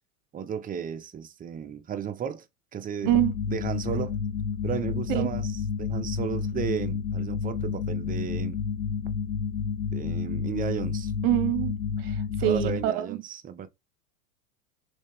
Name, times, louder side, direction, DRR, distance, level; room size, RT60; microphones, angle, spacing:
voice 1, 0.3-2.5 2.7-3.2 3.5-4.2 4.6-8.6 9.9-11.1 12.4-13.7, right 8 dB, 20° right, 0.5 m, -34 dB
sound 1, 3.0-12.9, left 6 dB, 90° left, 0.9 m, -30 dB
voice 2, 11.2-13.2, right 13 dB, 60° right, 0.8 m, -25 dB
3.3 x 3.2 x 3.3 m
hypercardioid pair, 85°, 45 cm